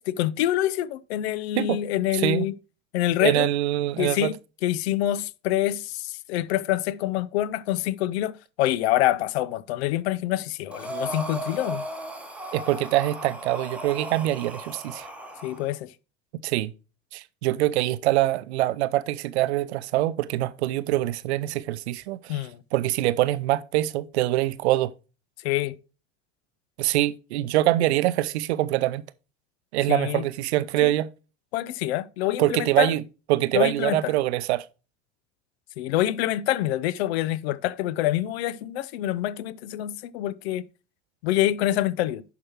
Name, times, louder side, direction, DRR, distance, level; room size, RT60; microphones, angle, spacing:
voice 1, 0.0-2.5 2.9-3.5 4.0-4.3 4.6-11.8 15.4-15.9 22.3-22.6 25.4-25.8 29.9-30.2 30.8-30.9 31.5-32.9 33.5-34.1 35.8-40.6 41.2-42.2, left 13 dB, 55° left, 0.6 m, -26 dB
voice 2, 2.1-2.5 3.2-4.3 12.5-15.1 16.4-16.7 17.1-22.4 22.7-24.9 26.8-29.0 29.7-31.1 32.4-33.0 33.3-34.6, right 15 dB, 60° right, 0.6 m, -24 dB
Breathing, 10.7-15.6, right 1 dB, 5° right, 1.2 m, -36 dB
10.5 x 5.9 x 3.0 m
figure-of-eight pair, 70°, 38 cm